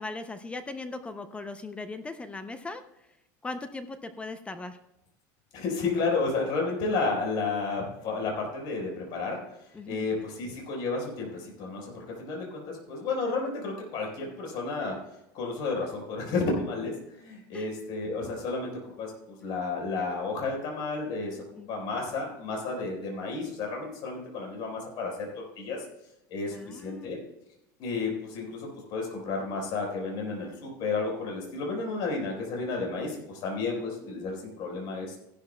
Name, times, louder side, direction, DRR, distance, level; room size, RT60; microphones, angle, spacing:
voice 1, 0.0-2.8 3.4-4.8 9.7-10.1 17.5-17.7 21.6-21.7 26.5-27.1 34.0-34.4, left 3 dB, 10° left, 9 dB, 0.5 m, -39 dB
voice 2, 5.5-9.4 9.9-14.9 15.3-18.7 19.0-21.4 21.7-25.3 25.6-25.8 26.3-27.2 27.8-35.2, left 3 dB, 45° left, 0 dB, 4.2 m, -32 dB
16.5 x 11.5 x 2.2 m, 0.85 s
cardioid pair, 160°, 10 cm